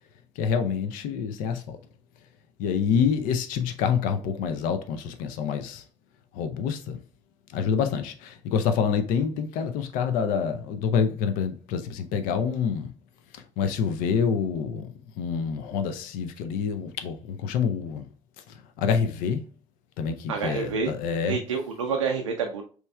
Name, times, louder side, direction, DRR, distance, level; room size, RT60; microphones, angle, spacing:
voice 1, 0.4-1.8 2.6-5.8 6.3-7.0 7.5-12.9 13.6-14.9 15.2-18.1 18.8-19.4 20.0-21.4, left 7 dB, 60° left, 0.5 m, -27 dB
voice 2, 20.3-20.9 21.2-22.6, right 5 dB, 80° right, 0.4 m, -28 dB
5.3 x 3.1 x 2.3 m
figure-of-eight pair, 45°, 16 cm